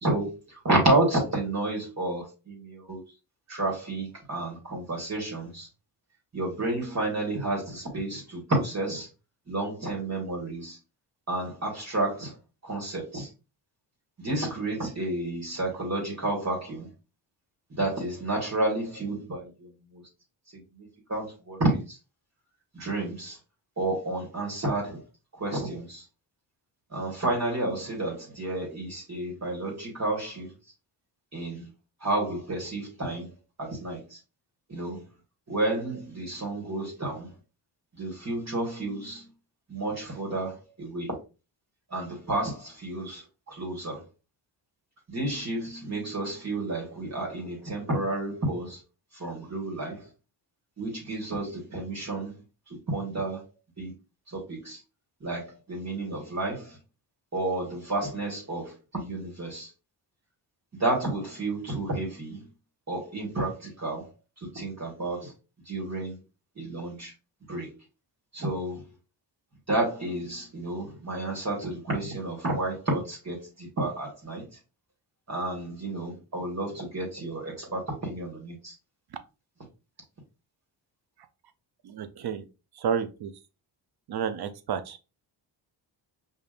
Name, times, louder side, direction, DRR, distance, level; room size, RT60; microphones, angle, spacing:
voice 1, 0.0-3.0 3.5-5.7 6.3-9.1 9.5-10.8 11.3-12.4 12.6-13.3 14.2-16.9 17.7-20.0 20.5-22.0 22.7-23.4 23.8-25.0 25.3-26.0 26.9-30.5 31.3-31.7 32.0-34.2 34.7-35.1 35.5-37.3 37.9-39.2 39.7-41.1 41.9-44.0 45.1-48.8 49.1-50.1 50.8-52.4 52.9-53.4 53.8-53.9 54.3-54.8 55.2-56.8 57.3-59.7 60.7-62.5 62.9-64.1 64.4-65.3 65.6-66.2 66.5-67.1 67.5-67.7 68.3-68.9 69.7-74.4 75.3-78.7, right 2 dB, 35° right, 1.7 m, -31 dB
voice 2, 81.8-82.5 82.7-83.3 84.1-85.2, right 7 dB, 55° right, 0.7 m, -31 dB
5.2 x 2.6 x 2.4 m
cardioid pair, 70°, 46 cm